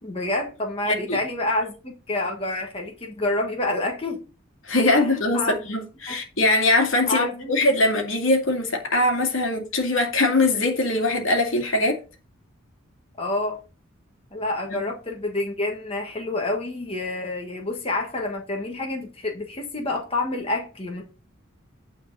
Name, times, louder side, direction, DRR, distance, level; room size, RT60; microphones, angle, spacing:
voice 1, 0.0-4.2 4.8-5.6 6.1-6.2 7.1-7.5 13.2-13.6 14.3-21.0, left 2 dB, 25° left, 1.6 m, -28 dB
voice 2, 0.9-1.2 4.7-12.0 14.7-14.8, left 2 dB, 70° left, 2.3 m, -22 dB
9.6 x 4.5 x 5.4 m
head